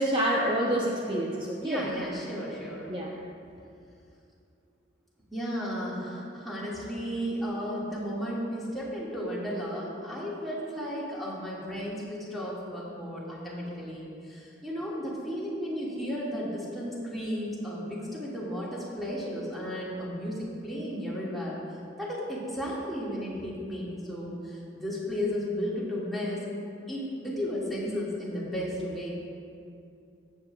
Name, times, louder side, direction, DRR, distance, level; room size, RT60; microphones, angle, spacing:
voice 1, 0.0-1.9 2.9-3.1, right 1 dB, 25° right, -2 dB, 0.5 m, -27 dB
voice 2, 1.6-2.9 5.3-21.6 22.0-26.4 26.9-29.1, equal, ahead, -8 dB, 1.8 m, -34 dB
15.5 x 7.4 x 2.3 m, 2.6 s
head